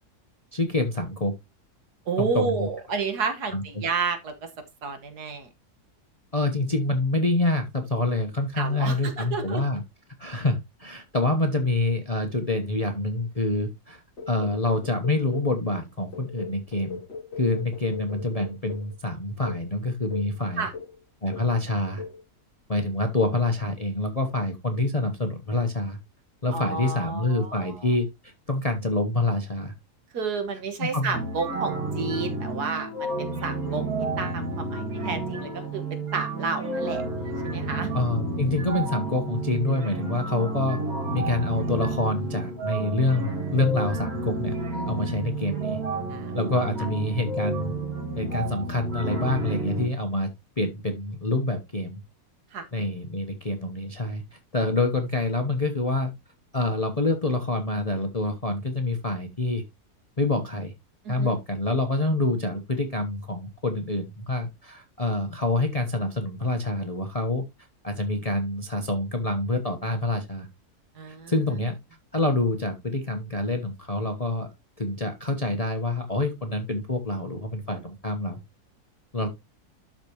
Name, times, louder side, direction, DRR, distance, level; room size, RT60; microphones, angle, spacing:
voice 1, 0.5-1.3 2.2-2.7 3.5-3.6 6.3-9.8 10.2-17.0 17.4-20.7 21.2-22.0 22.7-26.0 26.4-29.7 30.8-31.2 37.9-40.8 41.1-44.6 44.9-45.8 46.3-47.7 48.1-50.3 50.6-52.0 52.7-56.1 56.5-59.6 60.2-60.7 61.1-67.4 67.8-70.5 71.3-71.8 72.1-74.5 74.8-78.4 79.1-79.3, left 2 dB, 25° left, 5 dB, 1.1 m, -26 dB
voice 2, 2.1-4.3 4.8-5.5 8.6-9.6 20.6-20.7 26.5-27.7 30.1-35.8 36.1-37.0 37.4-37.9 44.7-44.9 46.1-46.3 52.5-52.6 61.0-61.3 71.0-71.3, right 5 dB, 80° right, 7 dB, 1.8 m, -31 dB
sound 1, 14.2-15.6 16.1-19.0 19.4-19.7 20.1-20.4 20.7-21.0 21.3-21.6 22.0-22.2, left 5 dB, 45° left, 1.3 m, -39 dB
sound 2, 31.1-49.9, right 2 dB, 65° right, 2.5 m, -31 dB
12.0 x 4.9 x 3.0 m, 0.21 s
omnidirectional pair, 1.7 m